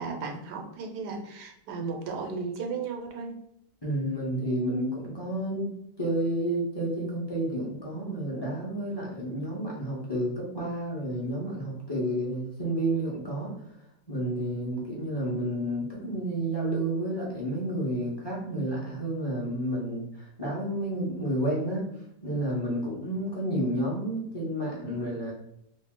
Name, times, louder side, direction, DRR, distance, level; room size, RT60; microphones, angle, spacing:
voice 1, 0.0-3.3, right 4 dB, 90° right, 3 dB, 1.3 m, -35 dB
voice 2, 3.8-13.5 14.1-21.9 22.2-25.3, right 1 dB, 25° left, -4 dB, 0.6 m, -30 dB
3.1 x 2.7 x 3.6 m, 0.75 s
omnidirectional pair, 1.7 m